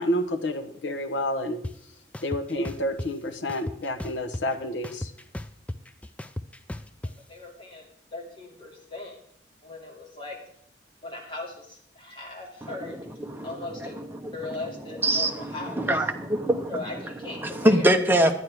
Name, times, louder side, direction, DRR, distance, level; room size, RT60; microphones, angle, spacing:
voice 1, 0.0-1.6 2.2-5.1, left 1 dB, 75° left, 9 dB, 1.0 m, -29 dB
sound 1, 1.6-1.7 2.1-3.1 3.5-4.6 4.8-7.1, left 1 dB, 5° left, 0.3 m, -35 dB
voice 2, 7.3-9.2 9.6-10.4 11.0-13.0 13.4-13.9 14.3-16.0 16.7-18.0, left 2 dB, 30° left, -2 dB, 2.5 m, -38 dB
voice 3, 15.0-16.9 17.3-18.3, right 1 dB, 10° right, 4 dB, 0.8 m, -23 dB
11.0 x 9.5 x 4.7 m, 0.67 s
head